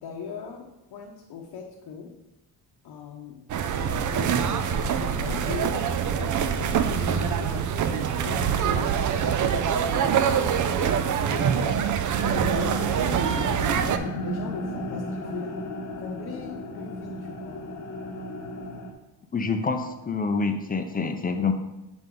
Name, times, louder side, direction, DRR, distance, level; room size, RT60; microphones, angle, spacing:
voice 1, 0.0-2.2 2.8-8.9 9.4-11.8 12.2-13.9 14.2-15.6 16.0-17.6, left 6 dB, 70° left, -1 dB, 0.9 m, -39 dB
sound 1, 3.5-14.0, right 8 dB, 45° right, 0.5 m, -25 dB
sound 2, 12.2-18.9, left 1 dB, 40° left, 0.9 m, -34 dB
voice 2, 19.3-21.5, left 4 dB, 20° left, 6 dB, 0.5 m, -26 dB
7.5 x 4.0 x 3.7 m, 0.97 s
cardioid pair, 115°, 42 cm